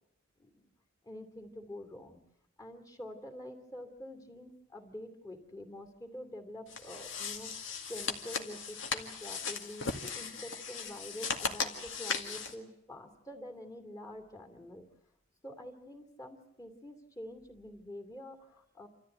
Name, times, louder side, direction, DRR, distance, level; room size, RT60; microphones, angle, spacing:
voice 1, 1.0-2.2 2.6-7.5 7.9-9.9 10.1-14.9 15.4-18.9, left 1 dB, 20° left, 5 dB, 2.6 m, -47 dB
sound 1, 6.7-12.5, left 5 dB, 70° left, 2.1 m, -37 dB
28.0 x 14.0 x 9.2 m, 0.83 s
head